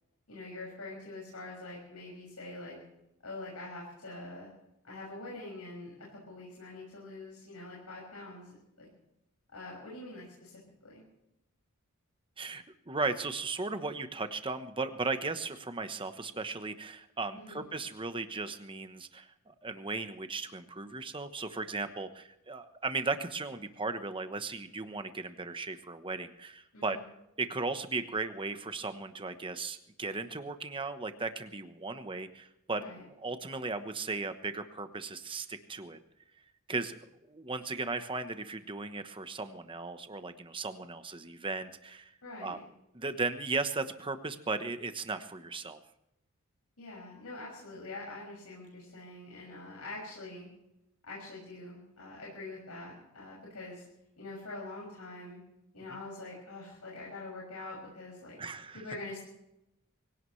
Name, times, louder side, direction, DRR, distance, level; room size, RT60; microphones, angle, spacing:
voice 1, 0.3-2.8 3.2-4.5 4.8-8.9 9.5-11.0 17.3-17.6 26.7-27.0 32.8-33.0 42.2-42.6 46.8-50.5 51.0-53.8 54.2-55.4 55.7-58.4 58.7-59.2, left 2 dB, 85° left, -4 dB, 6.5 m, -45 dB
voice 2, 12.4-27.0 27.4-32.9 33.2-36.0 36.7-37.0 37.3-42.1 42.4-42.6 42.9-45.8 58.4-58.8, right 3 dB, 25° right, 9 dB, 1.1 m, -36 dB
24.0 x 17.5 x 3.3 m, 0.84 s
head